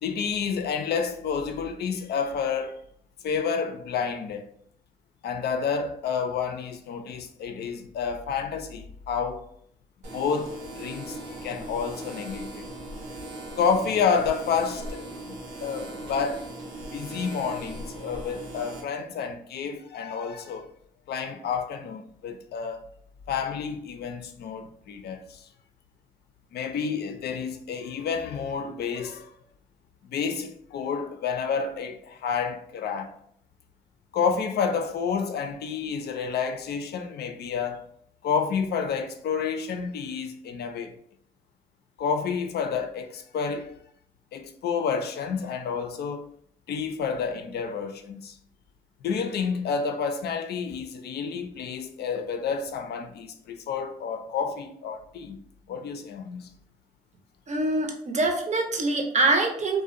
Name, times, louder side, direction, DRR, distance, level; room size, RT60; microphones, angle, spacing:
voice 1, 0.0-2.8 3.2-4.4 5.2-9.5 10.1-12.7 13.6-16.5 16.9-20.7 21.1-22.9 23.3-25.5 26.5-29.3 30.0-33.1 34.1-37.9 38.2-40.9 42.0-43.8 44.3-46.3 46.7-48.3 49.0-55.4 55.7-56.5, left 6 dB, 65° left, 0.4 m, -29 dB
sound 1, 10.0-18.8, right 1 dB, 85° right, 0.5 m, -39 dB
voice 2, 57.5-59.8, right 2 dB, 40° right, 0.6 m, -24 dB
2.4 x 2.1 x 2.5 m
hypercardioid pair, 40°, 18 cm